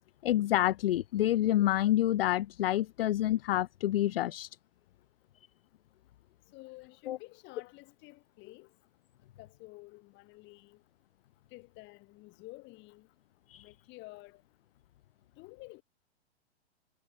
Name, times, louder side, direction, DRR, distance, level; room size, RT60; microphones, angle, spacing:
voice 1, 0.2-4.5 7.1-7.2 13.5-13.6, left 13 dB, 60° left, 0.7 m, -28 dB
voice 2, 6.5-8.7 9.4-10.8 11.5-13.1 13.6-14.4 15.4-15.8, left 23 dB, 35° left, 2.9 m, -51 dB
hypercardioid pair, 120°, 33 cm